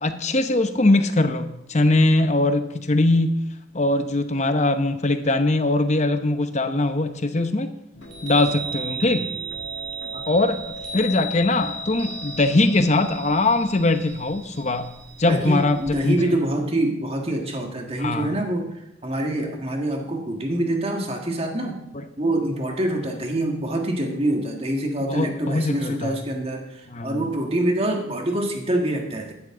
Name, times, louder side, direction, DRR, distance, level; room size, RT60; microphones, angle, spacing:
voice 1, 0.0-3.5 3.7-7.7 8.2-9.3 10.3-14.9 15.2-16.4 18.0-18.3 25.1-26.1 26.9-27.2, left 2 dB, 40° left, 9 dB, 0.9 m, -21 dB
sound 1, 7.9-13.0, left 3 dB, 70° left, 1.5 m, -42 dB
Chime, 8.0-16.1, right 3 dB, 85° right, 2.5 m, -35 dB
voice 2, 15.3-18.7 19.0-21.8 22.2-29.3, right 1 dB, 35° right, 2 dB, 1.8 m, -25 dB
15.0 x 11.0 x 3.8 m, 0.83 s
head